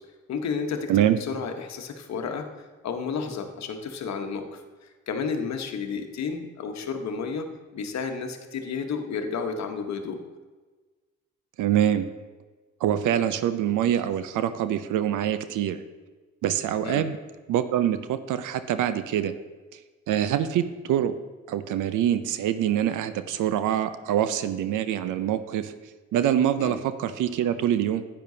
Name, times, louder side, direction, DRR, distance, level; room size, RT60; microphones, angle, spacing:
voice 1, 0.3-0.9 1.2-2.5 2.8-4.6 5.1-7.5 7.7-10.2 16.8-17.0 26.6-26.7, left 5 dB, 55° left, 5 dB, 1.2 m, -31 dB
voice 2, 11.6-12.1 12.8-15.8 16.4-17.2 17.5-19.3 20.1-21.1 21.5-25.7 26.1-28.0, right 10 dB, 70° right, 12 dB, 0.7 m, -25 dB
10.0 x 8.9 x 2.8 m, 1.3 s
supercardioid pair, 60°, 32 cm